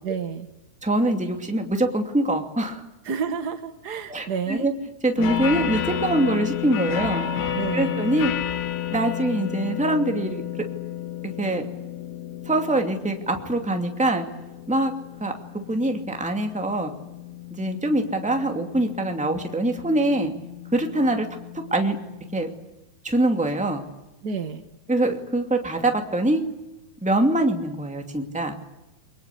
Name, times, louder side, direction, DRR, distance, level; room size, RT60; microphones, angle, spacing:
voice 1, 0.0-0.5 3.0-4.7 7.5-8.0 24.2-24.6, right 6 dB, 75° right, 8 dB, 0.9 m, -30 dB
voice 2, 0.8-2.8 4.1-4.7 5.0-7.3 7.7-8.3 8.9-10.4 11.4-11.7 12.4-14.2 14.7-14.9 15.2-16.9 17.6-20.3 20.7-21.3 21.7-22.0 22.3-22.5 23.0-23.8 24.9-26.4 27.0-28.7, right 1 dB, 5° right, 4 dB, 1.5 m, -23 dB
sound 1, 5.2-22.5, left 10 dB, 85° left, 3.4 m, -32 dB
29.0 x 23.5 x 8.5 m, 1.0 s
omnidirectional pair, 4.3 m